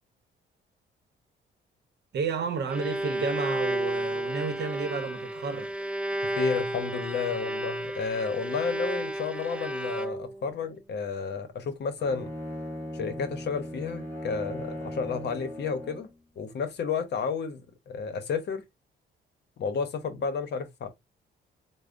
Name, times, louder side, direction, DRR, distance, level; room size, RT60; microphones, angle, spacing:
voice 1, 2.1-5.9, right 5 dB, 60° right, 0.8 m, -31 dB
Bowed string instrument, 2.4-10.5, right 1 dB, 5° right, 0.4 m, -32 dB
voice 2, 6.2-12.3 12.9-16.1 16.4-18.6 19.6-20.9, left 5 dB, 60° left, 0.8 m, -31 dB
Bowed string instrument 2, 12.0-16.2, equal, 10° left, 2.1 m, -38 dB
4.8 x 2.0 x 2.5 m
cardioid pair, 90°, 20 cm